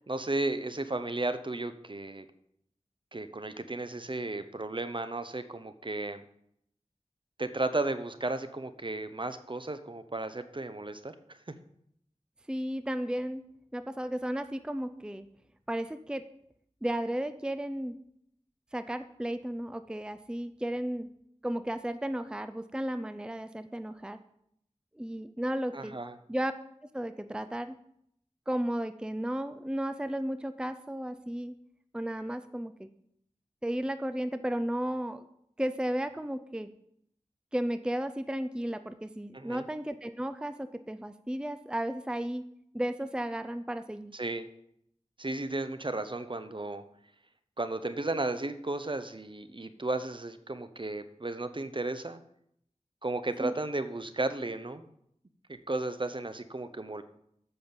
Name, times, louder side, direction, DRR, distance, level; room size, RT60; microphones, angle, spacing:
voice 1, 0.1-2.2 3.1-6.2 7.4-11.1 11.5-11.6 25.7-26.1 39.3-39.6 44.1-44.5 45.2-46.8 47.6-52.2 53.0-54.8 55.5-57.0, right 2 dB, 40° right, 11 dB, 0.9 m, -34 dB
voice 2, 12.5-13.4 13.7-15.3 15.7-16.2 16.8-18.0 18.7-21.1 21.4-24.2 24.9-26.0 26.3-26.5 26.9-27.8 28.5-31.6 31.9-32.9 33.6-35.2 35.6-36.7 37.5-42.4 42.7-44.1 53.4-53.5, right 1 dB, 5° right, 10 dB, 0.5 m, -34 dB
9.7 x 5.6 x 7.1 m, 0.72 s
wide cardioid pair, 45°, 12 cm